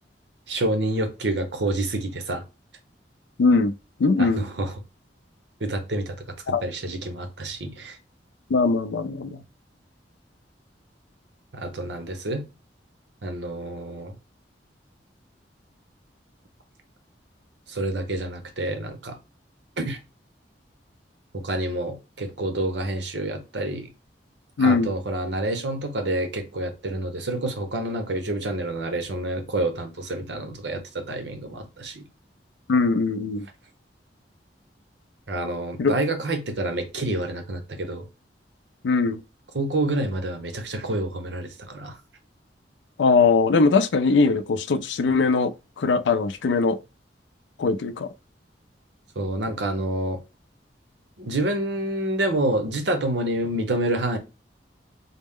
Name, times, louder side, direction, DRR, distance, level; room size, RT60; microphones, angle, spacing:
voice 1, 0.5-2.4 4.2-4.8 5.6-6.1 6.6-8.0 11.5-12.4 13.2-14.1 17.7-19.2 19.8-20.0 21.3-23.9 24.6-32.0 35.3-38.0 39.5-41.9 49.2-50.2 51.2-54.2, right 1 dB, 75° right, 0.9 m, -28 dB
voice 2, 3.4-3.7 4.0-4.5 6.5-6.7 8.5-9.4 24.6-24.9 32.7-33.5 35.8-35.9 38.8-39.2 43.0-45.5 45.8-46.8 47.6-48.1, left 4 dB, 90° left, 0.4 m, -21 dB
4.1 x 2.0 x 3.6 m
head